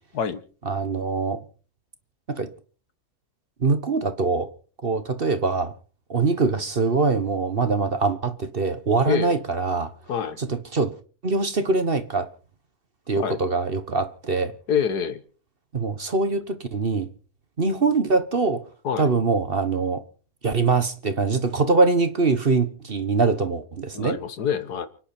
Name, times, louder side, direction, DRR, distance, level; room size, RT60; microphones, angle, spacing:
voice 1, 0.7-1.4 2.3-2.5 3.6-4.5 4.8-5.7 6.1-9.9 10.4-10.9 11.2-12.3 13.1-14.5 15.7-17.1 17.6-18.6 19.0-20.0 20.4-24.2, right 4 dB, 40° right, 1.3 m, -23 dB
voice 2, 9.1-9.4 10.1-10.4 13.2-13.4 14.7-15.2 18.8-19.1 23.9-24.9, left 7 dB, 75° left, 1.8 m, -26 dB
29.5 x 10.0 x 4.4 m
omnidirectional pair, 1.7 m